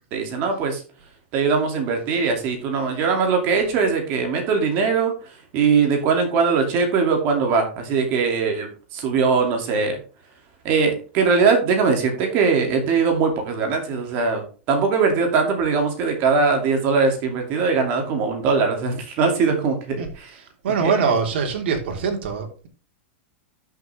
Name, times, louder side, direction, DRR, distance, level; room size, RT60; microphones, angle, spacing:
voice 1, 0.1-0.8 1.3-10.0 10.6-20.3 20.8-21.1, right 5 dB, 30° right, 2.5 m, -21 dB
voice 2, 20.6-22.7, right 5 dB, 60° right, 3.2 m, -23 dB
12.5 x 6.5 x 3.4 m
supercardioid pair, 175°, 7 cm